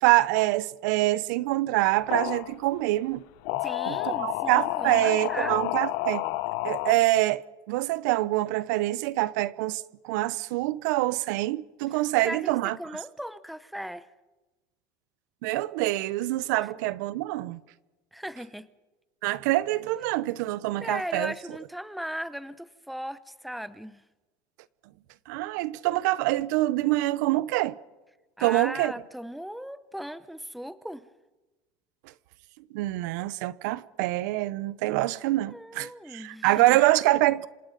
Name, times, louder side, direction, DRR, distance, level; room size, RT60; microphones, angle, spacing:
voice 1, 0.0-3.2 3.9-6.2 6.6-12.8 15.4-17.6 19.2-21.3 25.3-27.8 28.4-28.9 32.7-37.5, right 17 dB, 85° right, 0.9 m, -25 dB
sound 1, 1.9-2.5 3.4-6.9, left 18 dB, 70° left, 0.8 m, -30 dB
voice 2, 3.6-5.6 12.2-14.1 16.6-16.7 18.1-18.7 20.8-24.0 28.4-31.1 35.5-36.8, equal, ahead, 0.8 m, -37 dB
27.0 x 26.5 x 5.4 m
cardioid pair, 155°, 10 cm